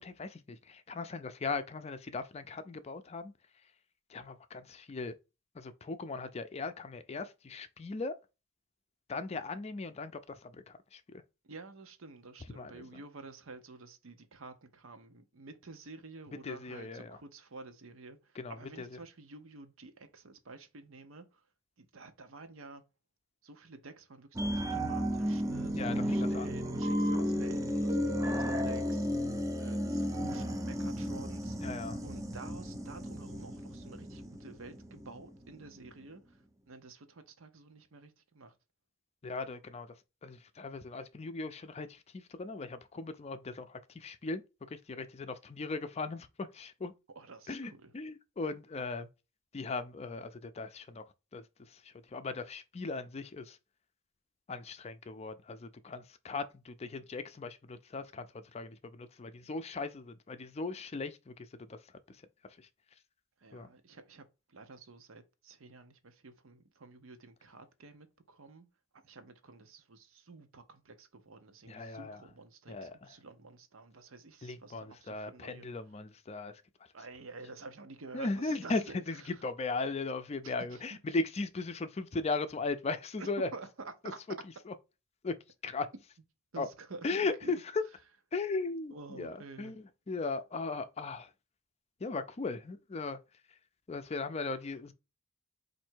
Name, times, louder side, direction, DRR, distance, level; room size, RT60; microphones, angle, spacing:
voice 1, 0.0-3.3 4.1-5.1 5.6-8.1 9.1-10.1 12.6-12.8 16.4-17.2 18.4-18.9 25.7-26.5 27.2-27.3 31.6-32.0 39.2-39.9 40.2-41.9 42.1-43.7 44.0-44.4 44.9-46.9 47.5-49.1 49.5-51.0 51.3-51.4 52.1-53.4 54.5-58.2 58.5-61.1 61.7-61.8 63.5-63.7 71.7-72.2 72.7-73.1 74.4-76.5 78.1-83.5 85.2-85.3 85.6-85.9 86.6-86.7 87.0-87.8 88.3-91.3 92.0-93.2 93.9-94.9, left 3 dB, 30° left, 0.4 m, -37 dB
voice 2, 11.4-18.2 18.5-21.3 21.8-22.8 23.4-36.2 36.7-38.5 47.1-47.9 63.4-64.2 64.5-68.7 69.0-75.7 76.9-79.4 80.4-80.8 83.2-84.2 86.5-87.6 88.9-89.7, right 3 dB, 80° right, 0.8 m, -50 dB
sound 1, 24.3-35.4 35.8-35.9, equal, 15° right, 0.6 m, -33 dB
4.3 x 2.6 x 4.5 m
head